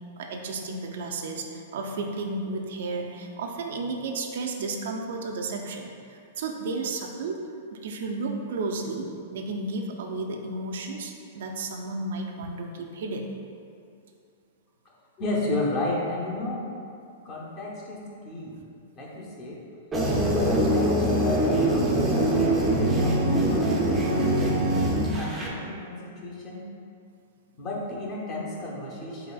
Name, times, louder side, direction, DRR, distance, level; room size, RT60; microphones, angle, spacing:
voice 1, 0.2-7.4 7.7-13.3, right 3 dB, 70° right, 2 dB, 0.4 m, -33 dB
voice 2, 15.2-16.7 17.2-18.5 18.9-19.6 20.4-26.7 27.6-29.3, left 2 dB, 30° left, -3 dB, 0.7 m, -33 dB
sound 1, 19.9-25.5, right 1 dB, 10° right, 0.4 m, -23 dB
3.9 x 3.2 x 2.3 m, 2.4 s
hypercardioid pair, 150°, 0 cm